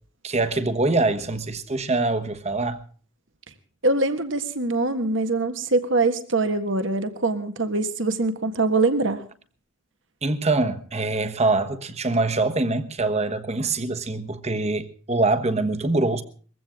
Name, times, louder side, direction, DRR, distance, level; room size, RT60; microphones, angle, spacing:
voice 1, 0.2-2.8 10.2-16.2, right 2 dB, 35° right, 1.3 m, -24 dB
voice 2, 3.8-9.2, right 2 dB, 70° right, 1.6 m, -23 dB
21.5 x 15.5 x 3.7 m
head